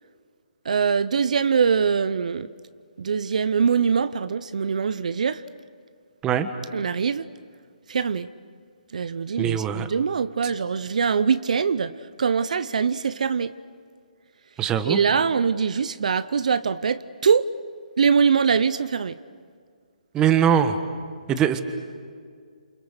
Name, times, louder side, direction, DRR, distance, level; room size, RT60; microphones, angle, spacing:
voice 1, 0.7-2.5 3.0-5.4 6.7-7.2 7.9-8.3 8.9-11.9 12.2-13.5 14.8-17.5 18.0-19.1, right 6 dB, 65° right, 0.8 m, -23 dB
voice 2, 9.4-9.9 10.4-10.5 14.6-15.0 20.1-20.8 21.3-21.6, right 9 dB, 15° right, 1.4 m, -21 dB
29.0 x 28.5 x 6.6 m
hypercardioid pair, 150°, 4 cm